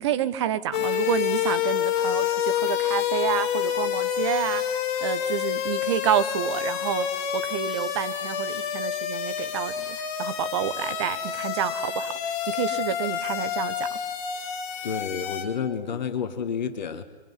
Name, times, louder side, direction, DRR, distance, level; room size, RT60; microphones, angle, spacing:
voice 1, 0.0-4.6 5.0-7.1 7.3-12.1 12.5-14.0, right 10 dB, 25° right, 13 dB, 1.2 m, -29 dB
sound 1, 0.7-15.4, left 9 dB, 20° left, 5.0 m, -28 dB
voice 2, 14.8-17.0, left 7 dB, 45° left, 6 dB, 1.9 m, -30 dB
24.0 x 24.0 x 9.6 m, 1.1 s
figure-of-eight pair, 140°, 32 cm